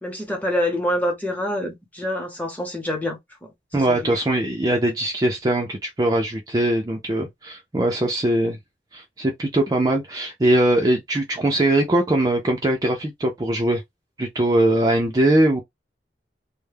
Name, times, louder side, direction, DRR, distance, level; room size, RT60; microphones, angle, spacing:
voice 1, 0.0-3.5 3.9-4.1, left 1 dB, 10° left, 0.8 m, -26 dB
voice 2, 3.7-8.6 8.9-13.8 14.2-15.6, right 1 dB, 20° right, 0.4 m, -21 dB
2.2 x 2.0 x 3.2 m
head